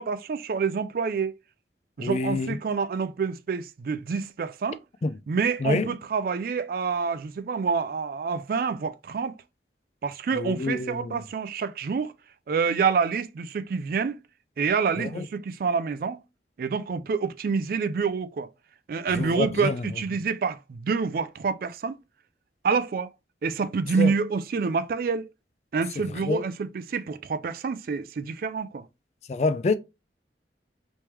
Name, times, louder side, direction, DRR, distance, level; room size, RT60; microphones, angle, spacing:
voice 1, 0.0-1.4 2.0-4.8 5.3-9.4 10.0-12.1 12.5-14.2 14.6-16.2 16.6-18.5 18.9-22.0 22.6-23.1 23.4-25.3 25.7-28.9, right 5 dB, 55° right, 0.3 m, -27 dB
voice 2, 2.0-2.6 5.0-5.1 5.6-5.9 10.4-11.2 15.0-15.2 19.1-19.8 24.0-24.1 26.2-26.4 29.3-29.7, left 3 dB, 40° left, 0.3 m, -27 dB
3.3 x 3.2 x 3.0 m
head